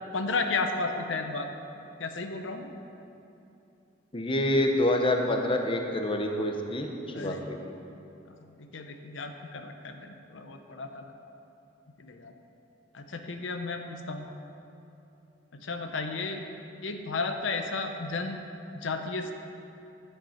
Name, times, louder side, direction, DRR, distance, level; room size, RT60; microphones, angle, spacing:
voice 1, 0.1-1.6 2.0-2.7 7.1-7.4 8.3-11.1 12.0-12.3 12.9-14.3 15.5-16.4 16.8-18.4 18.7-19.3, left 3 dB, 85° left, 5 dB, 0.8 m, -33 dB
voice 2, 4.1-6.9 7.1-7.6, left 1 dB, 30° left, 3 dB, 0.8 m, -27 dB
10.0 x 8.0 x 5.8 m, 2.8 s
head